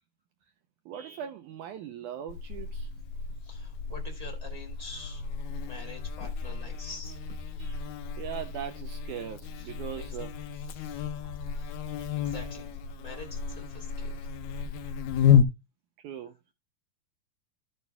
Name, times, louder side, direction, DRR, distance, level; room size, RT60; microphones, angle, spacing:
voice 1, 0.9-2.9 7.6-7.9 8.2-10.3 11.2-11.4 12.0-12.2 16.0-16.3, right 9 dB, 80° right, 1.8 m, -40 dB
Buzz, 2.3-15.4, left 7 dB, 80° left, 1.6 m, -31 dB
voice 2, 3.4-5.2 5.5-7.1 7.6-8.1 9.5-10.1 10.5-11.1 11.4-11.8 12.1-14.3, left 2 dB, 15° right, 1.8 m, -47 dB
12.0 x 9.2 x 2.3 m
omnidirectional pair, 4.3 m